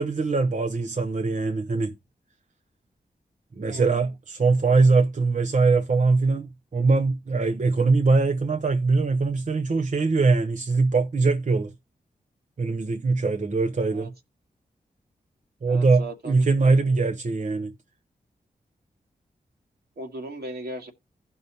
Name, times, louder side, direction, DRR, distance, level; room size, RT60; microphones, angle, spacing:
voice 1, 0.0-1.9 3.6-11.7 12.6-14.1 15.6-17.7, right 3 dB, 50° right, 0.9 m, -22 dB
voice 2, 3.7-4.1 13.9-14.1 15.7-17.0 20.0-20.9, right 1 dB, 75° right, 1.9 m, -38 dB
15.5 x 5.5 x 2.8 m
cardioid pair, 40°, 17 cm